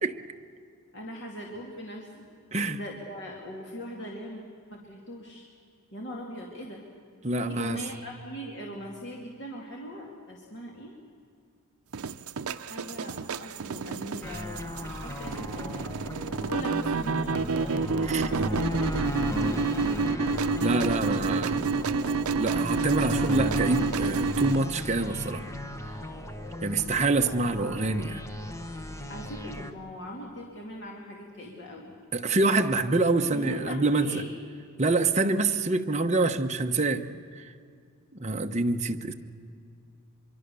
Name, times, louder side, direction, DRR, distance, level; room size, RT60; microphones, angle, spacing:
voice 1, 0.9-2.3 2.7-4.4 4.7-5.5 5.9-6.8 7.4-10.9 12.5-16.0 16.4-18.8 20.9-21.1 29.1-31.9 33.3-34.3, equal, 55° left, -1 dB, 2.6 m, -40 dB
voice 2, 7.2-7.8 18.1-18.3 20.6-21.7 22.4-25.4 26.6-28.2 32.1-34.1 34.8-37.1 37.3-37.5 38.2-39.1, right 2 dB, 30° right, 5 dB, 1.0 m, -26 dB
sound 1, 11.9-24.6, right 4 dB, 75° right, 0.6 m, -29 dB
sound 2, 14.2-29.7, left 1 dB, 15° left, 1.2 m, -35 dB
24.5 x 23.0 x 7.0 m, 2.3 s
head